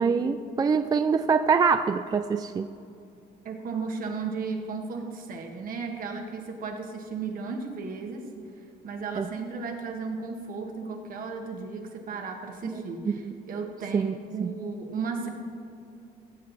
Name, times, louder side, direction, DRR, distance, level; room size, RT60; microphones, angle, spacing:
voice 1, 0.0-2.7 9.2-9.3 13.1-13.3 13.9-14.5, right 5 dB, 25° right, 9 dB, 0.3 m, -25 dB
voice 2, 3.4-8.2 8.8-13.2 13.5-15.3, right 4 dB, 55° right, 3 dB, 1.7 m, -34 dB
15.5 x 7.7 x 4.1 m, 2.6 s
cardioid pair, 110°, 17 cm